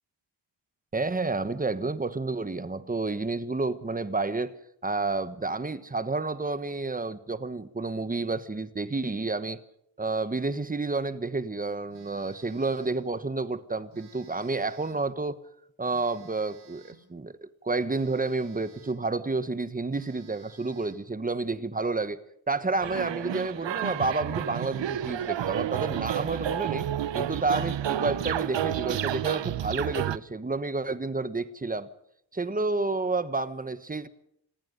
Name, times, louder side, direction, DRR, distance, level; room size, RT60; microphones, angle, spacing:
voice 1, 0.9-4.6 4.8-9.6 10.0-15.4 15.8-22.2 22.5-26.9 27.1-31.9 32.3-34.1, right 3 dB, 20° right, 13 dB, 1.2 m, -30 dB
Telephone, 11.9-13.1 13.9-15.1 15.9-17.1 17.9-19.1 19.5-19.6 19.9-21.1, right 6 dB, 85° right, 5.4 m, -57 dB
sound 1, 22.8-30.2, right 11 dB, 65° right, 0.8 m, -30 dB
27.5 x 21.0 x 5.3 m, 0.74 s
wide cardioid pair, 175°, 47 cm